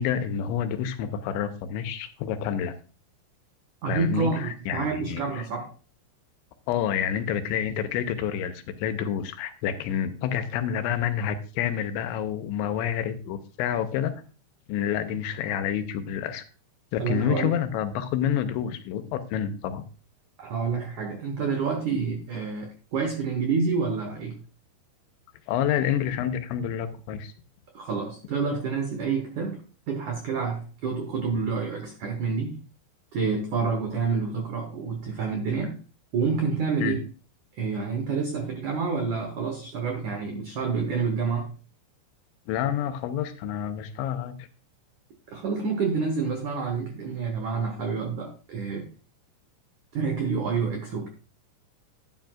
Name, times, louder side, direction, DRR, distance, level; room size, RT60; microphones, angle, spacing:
voice 1, 0.0-2.8 3.9-5.2 6.7-14.1 14.7-16.4 16.9-19.8 25.5-27.3 36.8-37.0 42.5-44.4, left 9 dB, 80° left, 9 dB, 3.0 m, -28 dB
voice 2, 3.8-5.7 17.0-17.6 20.4-24.4 27.7-32.6 33.1-35.8 36.1-37.0 37.5-41.5 45.3-48.9 49.9-51.1, right 5 dB, 80° right, 4 dB, 1.7 m, -28 dB
12.0 x 9.6 x 2.4 m, 0.35 s
omnidirectional pair, 5.4 m